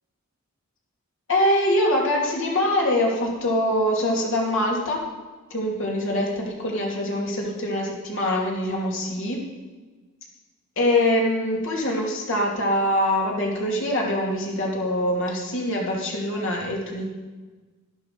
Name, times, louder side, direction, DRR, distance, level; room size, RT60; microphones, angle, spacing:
voice 1, 1.3-5.0 5.5-9.4 10.8-17.0, left 1 dB, 60° left, -2 dB, 2.8 m, -24 dB
11.5 x 11.5 x 5.2 m, 1.3 s
head